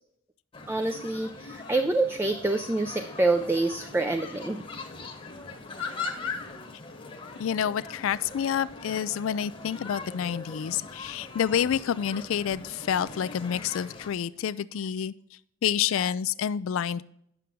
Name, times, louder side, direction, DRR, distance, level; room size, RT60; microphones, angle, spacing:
sound 1, 0.5-14.1, left 4 dB, 25° left, 1.0 m, -40 dB
voice 1, 0.7-4.6, right 2 dB, 10° right, 7 dB, 0.3 m, -26 dB
voice 2, 7.4-15.1 15.6-17.0, left 8 dB, 75° left, 16 dB, 0.3 m, -28 dB
9.3 x 6.9 x 3.7 m, 0.71 s
head